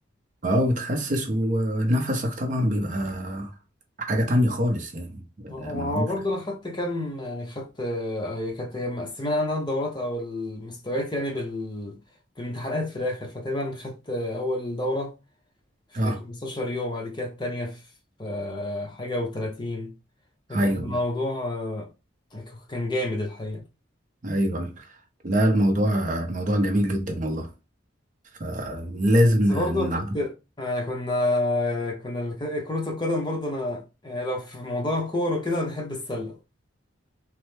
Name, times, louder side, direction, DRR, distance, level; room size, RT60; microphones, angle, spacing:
voice 1, 0.4-3.5 4.1-6.1 15.9-16.2 20.5-21.0 24.2-24.9 25.2-27.5 28.4-30.0, equal, 40° right, 0.6 m, -24 dB
voice 2, 5.5-12.0 12.4-15.1 16.0-17.8 18.2-19.9 20.5-21.9 22.3-23.6 29.5-30.3 30.6-36.4, left 1 dB, 25° left, 0.8 m, -29 dB
3.1 x 2.1 x 3.2 m
head